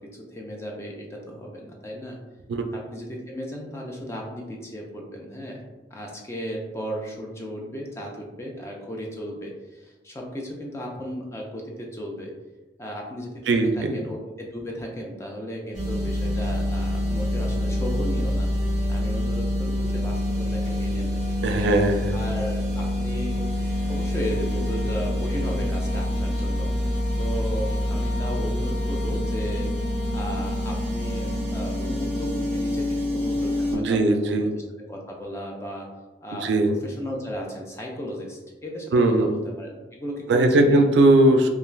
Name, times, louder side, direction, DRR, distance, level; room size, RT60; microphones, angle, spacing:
voice 1, 0.1-2.2 2.9-5.6 5.9-12.3 12.8-21.7 22.1-23.4 23.9-26.7 27.1-29.7 30.1-34.6 34.9-35.9 36.2-40.9, equal, 15° left, -1 dB, 0.3 m, -35 dB
voice 2, 13.5-13.9 21.4-22.2 33.7-34.5 36.3-36.7 38.9-39.3 40.3-41.5, right 2 dB, 75° right, 5 dB, 0.3 m, -19 dB
sound 1, 15.7-33.7, left 1 dB, 5° right, 0.8 m, -26 dB
2.4 x 2.3 x 3.1 m, 1.2 s
head